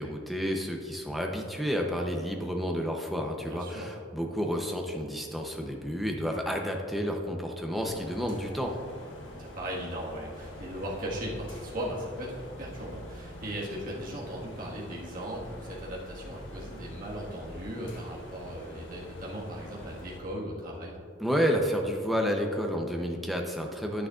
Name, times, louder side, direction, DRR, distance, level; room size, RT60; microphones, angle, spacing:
voice 1, 0.0-8.7 21.2-24.1, equal, ahead, 1 dB, 0.7 m, -30 dB
voice 2, 3.5-3.9 9.4-21.0, equal, 45° right, -4 dB, 1.7 m, -37 dB
sound 1, 7.7-20.2, equal, 65° left, 1.4 m, -45 dB
10.0 x 9.5 x 2.5 m, 2.3 s
head